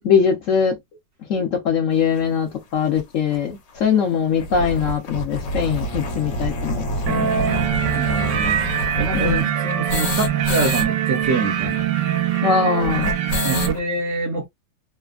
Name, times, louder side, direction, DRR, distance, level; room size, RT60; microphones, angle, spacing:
voice 1, 0.0-0.8 1.3-7.3 9.1-9.5 12.4-13.1, left 7 dB, 55° left, 0.9 m, -21 dB
sound 1, 2.2-2.3 3.0-3.1 3.3-3.4 3.7-3.8 4.2-10.9 11.1-11.2 11.4-13.8, left 1 dB, 80° left, 1.5 m, -28 dB
Bowed string instrument, 5.5-9.4, right 1 dB, 25° left, 0.6 m, -36 dB
sound 2, 7.1-13.7, right 10 dB, 80° right, 1.2 m, -23 dB
voice 2, 7.9-11.9 12.3-12.4 13.4-14.5, right 3 dB, 60° right, 0.8 m, -26 dB
3.3 x 2.1 x 2.3 m
omnidirectional pair, 1.9 m